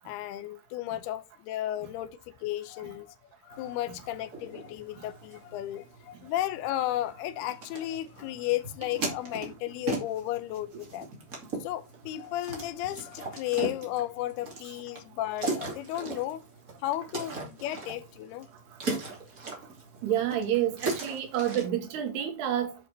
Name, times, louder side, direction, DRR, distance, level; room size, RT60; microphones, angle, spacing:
voice 1, 0.1-3.2 3.4-11.1 11.6-16.4 16.8-18.5, left 14 dB, 85° left, 2.7 m, -34 dB
sound 1, 3.5-21.7, right 3 dB, 25° right, 2.3 m, -39 dB
voice 2, 20.0-22.7, right 10 dB, 80° right, 3.5 m, -28 dB
8.9 x 6.2 x 3.9 m
omnidirectional pair, 4.6 m